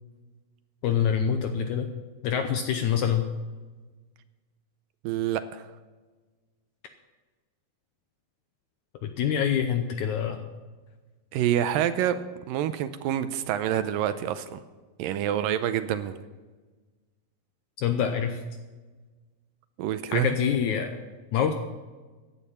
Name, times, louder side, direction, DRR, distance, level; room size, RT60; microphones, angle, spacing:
voice 1, 0.8-1.9 2.2-3.2 9.0-10.4 17.8-18.4 20.1-21.0 21.3-21.5, left 8 dB, 75° left, 6 dB, 1.8 m, -25 dB
voice 2, 5.0-5.7 11.3-14.6 15.0-16.2 19.8-20.4, right 11 dB, 80° right, 11 dB, 2.2 m, -27 dB
16.0 x 10.0 x 5.6 m, 1.3 s
omnidirectional pair, 4.2 m